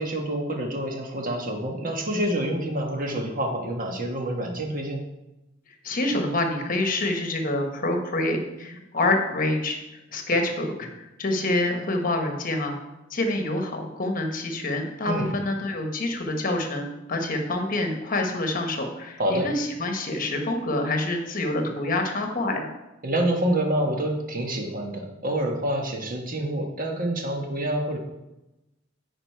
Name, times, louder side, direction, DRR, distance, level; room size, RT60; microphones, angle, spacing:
voice 1, 0.0-5.0 15.0-15.3 19.2-19.5 23.0-28.0, right 1 dB, 45° right, 2 dB, 1.3 m, -27 dB
voice 2, 5.8-9.8 10.1-12.7 13.1-22.7, left 2 dB, 45° left, 4 dB, 1.2 m, -27 dB
9.7 x 4.9 x 4.6 m, 0.98 s
head